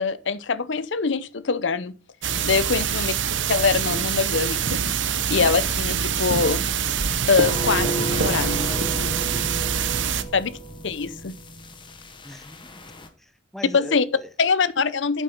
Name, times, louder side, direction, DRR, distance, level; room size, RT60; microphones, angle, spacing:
voice 1, 0.0-1.9 2.4-3.1 3.5-4.8 5.3-6.6 7.3-8.7 10.3-10.5 10.8-11.3 13.7-14.0 14.4-15.2, left 5 dB, 75° left, 0.7 m, -23 dB
sound 1, 2.2-10.2, right 7 dB, 75° right, 0.8 m, -25 dB
sound 2, 7.4-13.1, equal, 25° left, 1.3 m, -32 dB
voice 2, 9.8-10.3 12.2-12.8 13.2-14.3, left 1 dB, ahead, 0.7 m, -41 dB
8.7 x 7.5 x 4.5 m
head